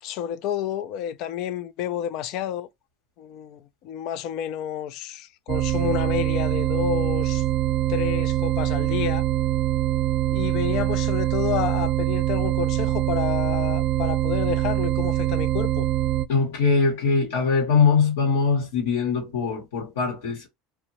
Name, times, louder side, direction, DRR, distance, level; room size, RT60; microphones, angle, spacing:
voice 1, 0.0-2.7 3.2-7.4 7.9-9.3 10.3-15.9, left 10 dB, 65° left, 0.3 m, -30 dB
sound 1, 5.5-16.3, right 14 dB, 50° right, 0.3 m, -24 dB
voice 2, 16.3-20.5, left 5 dB, 85° left, 0.9 m, -22 dB
2.6 x 2.1 x 2.9 m
supercardioid pair, 95°, 0 cm